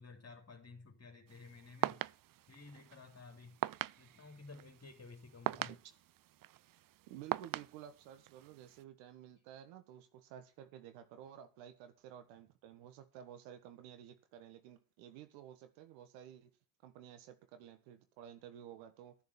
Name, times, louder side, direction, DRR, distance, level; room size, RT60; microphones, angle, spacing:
voice 1, 0.0-2.0 2.5-3.6 4.0-5.7, left 3 dB, 30° left, 2.9 m, -54 dB
sound 1, 1.3-8.8, right 14 dB, 45° right, 0.6 m, -43 dB
voice 2, 7.1-16.5 16.8-19.1, right 10 dB, 80° right, 1.6 m, -53 dB
12.5 x 7.3 x 7.0 m
hypercardioid pair, 45°, 46 cm